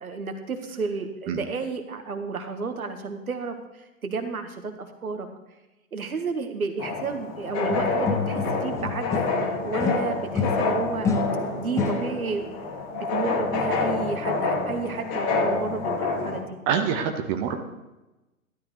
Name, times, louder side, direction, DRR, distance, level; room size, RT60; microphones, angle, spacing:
voice 1, 0.0-5.3 5.9-9.1 9.6-11.1 11.6-16.6, right 4 dB, 75° right, 6 dB, 1.6 m, -32 dB
sound 1, 6.8-16.4, left 3 dB, 35° left, 2.3 m, -28 dB
sound 2, 7.7-9.5 9.8-12.4, left 4 dB, 5° left, 0.5 m, -28 dB
voice 2, 16.7-17.6, right 7 dB, 30° right, 5 dB, 1.2 m, -25 dB
13.5 x 12.0 x 3.3 m, 1.0 s
figure-of-eight pair, 110°, 43 cm